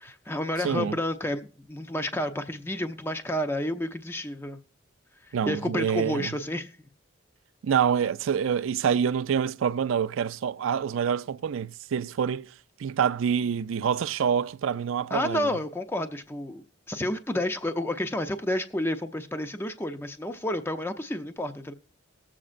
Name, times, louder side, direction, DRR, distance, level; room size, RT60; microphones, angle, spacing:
voice 1, 0.0-4.6 5.3-6.7 15.1-21.7, left 1 dB, 10° left, 0.5 m, -30 dB
voice 2, 0.6-0.9 5.3-6.3 7.6-12.5 12.8-15.6, right 7 dB, 80° right, 0.4 m, -26 dB
19.5 x 7.4 x 2.5 m
head